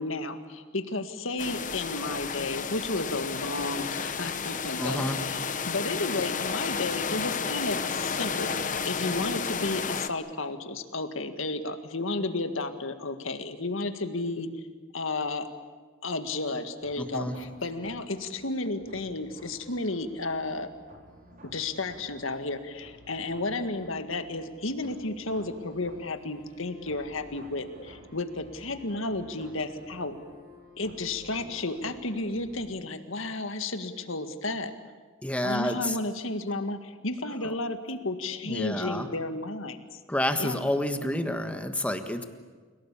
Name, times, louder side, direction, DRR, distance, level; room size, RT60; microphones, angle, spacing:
voice 1, 0.0-14.5 14.9-15.5 16.0-20.7 21.5-30.2 30.8-34.7 35.4-40.0 40.4-40.6, left 2 dB, 70° left, 8 dB, 1.9 m, -32 dB
sound 1, 1.4-10.1, left 5 dB, 40° left, 1.0 m, -32 dB
voice 2, 4.8-5.2 17.0-17.4 35.2-36.0 37.4-37.5 38.4-39.1 40.1-42.2, left 1 dB, 5° left, 7 dB, 1.5 m, -29 dB
sound 2, 16.8-32.8, equal, 40° right, 4.4 m, -52 dB
30.0 x 18.0 x 8.6 m, 1.5 s
head